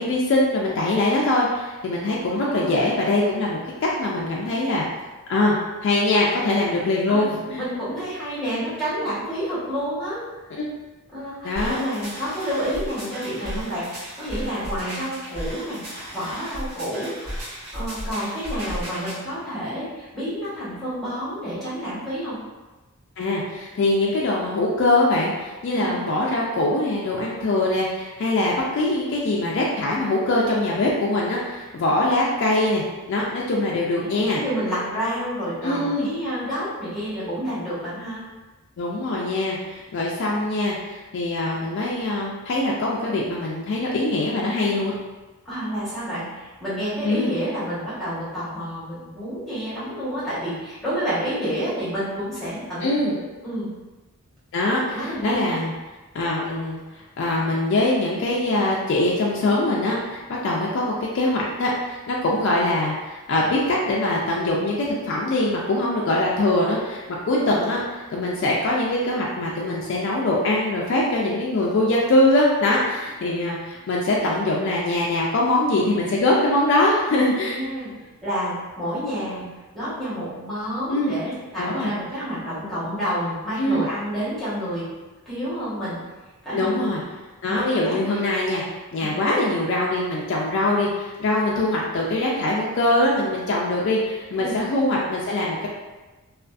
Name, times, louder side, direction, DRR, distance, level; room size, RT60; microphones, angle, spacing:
voice 1, 0.0-4.9 5.3-5.6 5.8-7.6 10.5-10.7 11.4-11.8 23.2-32.8 33.1-34.4 35.6-36.1 38.8-44.9 47.0-47.3 52.8-53.1 54.5-55.7 56.1-56.8 57.2-67.8 68.1-77.6 80.9-81.1 81.6-81.9 83.6-83.9 86.5-87.0 87.4-88.6 88.9-95.7, left 2 dB, 55° left, -4 dB, 0.3 m, -22 dB
voice 2, 2.3-2.7 7.1-10.2 11.1-17.4 17.7-22.4 25.7-26.0 34.0-38.2 45.4-53.7 54.9-55.6 67.3-67.6 77.4-84.8 85.3-86.0 86.4-86.7 87.5-88.2 89.0-89.2 94.4-94.7, equal, ahead, -12 dB, 1.0 m, -29 dB
sound 1, 11.5-19.2, equal, 80° right, 1.1 m, -34 dB
2.5 x 2.3 x 2.3 m, 1.2 s
head